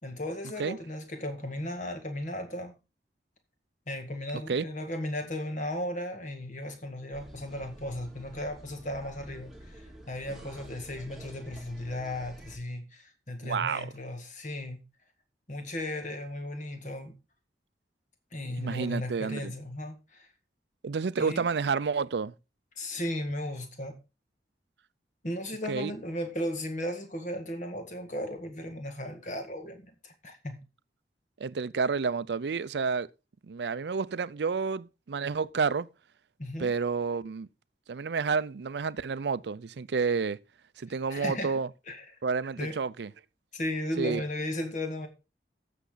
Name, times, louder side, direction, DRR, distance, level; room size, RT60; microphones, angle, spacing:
voice 1, 0.0-2.7 3.9-14.8 15.5-17.1 18.3-20.3 21.2-21.4 22.8-23.9 25.2-30.6 36.4-36.7 41.1-41.6 41.9-42.0 42.6-42.8 43.5-45.1, left 1 dB, 45° left, 1.9 m, -36 dB
sound 1, 7.1-12.6, right 1 dB, ahead, 2.0 m, -49 dB
voice 2, 13.4-13.9 18.6-19.5 20.8-22.3 25.7-25.9 31.4-33.1 33.5-35.9 36.6-37.5 37.9-40.4 40.8-41.7 42.2-43.1 44.0-44.2, right 5 dB, 75° right, 0.5 m, -30 dB
14.5 x 6.8 x 3.9 m
head